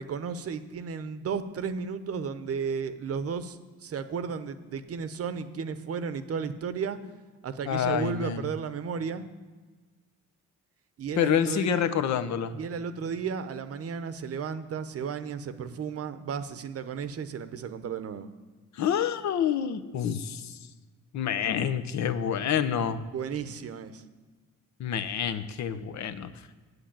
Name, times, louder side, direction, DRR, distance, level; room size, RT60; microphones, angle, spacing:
voice 1, 0.0-7.0 7.4-9.3 11.0-11.9 12.5-18.3 23.1-24.0, right 6 dB, 50° right, 11 dB, 0.8 m, -34 dB
voice 2, 7.7-8.4 11.2-12.5 18.7-20.6 21.1-23.0 24.8-26.3, left 9 dB, 65° left, 12 dB, 0.8 m, -27 dB
8.0 x 7.9 x 8.7 m, 1.3 s
cardioid pair, 90°, 30 cm